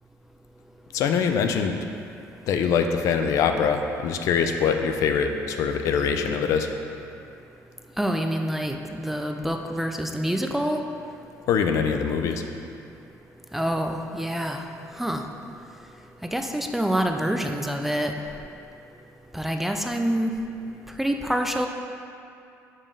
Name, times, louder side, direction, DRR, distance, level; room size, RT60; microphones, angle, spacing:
voice 1, 0.9-1.8 2.5-6.7 11.5-12.4, left 6 dB, 65° left, 6 dB, 0.5 m, -23 dB
voice 2, 8.0-10.8 13.5-14.7 15.0-15.2 16.2-18.1 19.3-20.3 21.0-21.7, equal, 5° right, 4 dB, 0.3 m, -26 dB
5.4 x 5.2 x 5.4 m, 2.6 s
cardioid pair, 145°, 6 cm